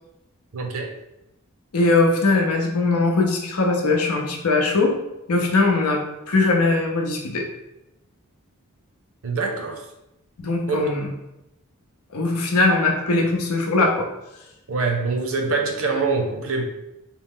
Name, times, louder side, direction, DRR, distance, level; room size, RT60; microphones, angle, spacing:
voice 1, 0.5-0.9 9.2-9.8 10.7-10.9 14.7-16.6, right 4 dB, 65° right, 3 dB, 0.6 m, -24 dB
voice 2, 1.7-4.9 5.3-7.5 10.4-11.0 12.1-14.1, left 3 dB, 85° left, 1 dB, 0.7 m, -20 dB
4.3 x 2.0 x 3.6 m, 0.91 s
head